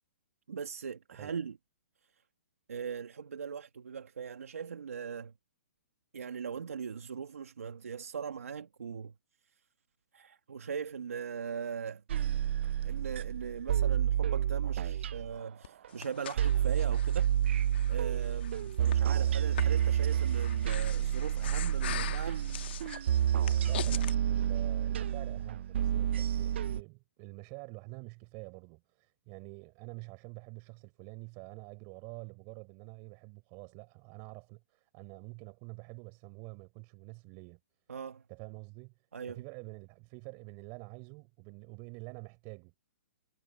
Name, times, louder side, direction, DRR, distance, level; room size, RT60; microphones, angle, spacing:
voice 1, 0.5-1.6 2.7-5.3 6.1-9.1 10.1-12.0 12.8-17.3 17.9-22.4 37.9-38.2 39.1-39.4, right 6 dB, 85° right, 1.5 m, -40 dB
sound 1, 12.1-15.4 15.8-15.9 16.4-26.8, right 10 dB, 55° right, 0.3 m, -29 dB
Breathing, 15.6-24.1, left 12 dB, 50° left, 1.1 m, -43 dB
voice 2, 23.6-37.6 38.3-38.9 39.3-42.7, right 33 dB, 30° right, 4.9 m, -47 dB
hypercardioid pair, 160°, 7 cm